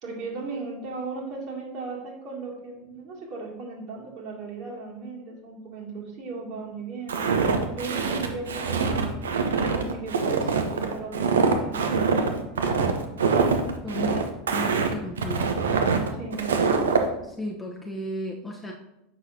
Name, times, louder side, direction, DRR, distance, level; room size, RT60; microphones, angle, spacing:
voice 1, 0.0-9.3 9.6-12.5 16.1-16.6, right 4 dB, 50° right, -4 dB, 2.4 m, -37 dB
Walk footsteps, 7.1-17.0, right 5 dB, 70° right, 0.7 m, -24 dB
voice 2, 13.8-15.5 17.2-18.7, left 1 dB, ahead, -2 dB, 0.8 m, -34 dB
7.4 x 6.2 x 2.7 m, 0.87 s
figure-of-eight pair, 80°, 0 cm